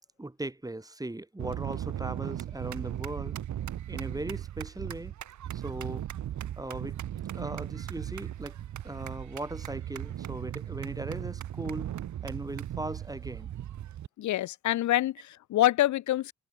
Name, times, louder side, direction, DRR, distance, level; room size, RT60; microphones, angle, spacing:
voice 1, 0.2-3.3 3.9-5.1 5.5-6.1 6.6-7.0 7.3-8.6 8.8-11.9 12.2-13.5, right 2 dB, 10° right, 5.3 m, -38 dB
sound 1, 1.4-14.1, right 11 dB, 70° right, 7.4 m, -37 dB
voice 2, 14.2-16.3, left 14 dB, 70° left, 0.9 m, -26 dB
cardioid pair, 90°, 30 cm